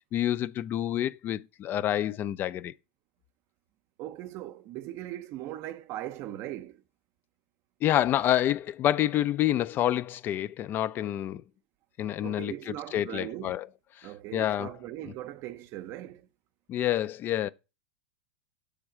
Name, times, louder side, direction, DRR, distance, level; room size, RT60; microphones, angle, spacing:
voice 1, 0.1-2.7 7.8-11.4 12.0-13.7 14.0-14.7 16.7-17.5, left 12 dB, 35° left, 0.3 m, -28 dB
voice 2, 4.0-6.8 12.2-13.6 14.0-16.3, right 14 dB, 45° right, 0.6 m, -39 dB
6.2 x 3.3 x 4.8 m
hypercardioid pair, 115°, 6 cm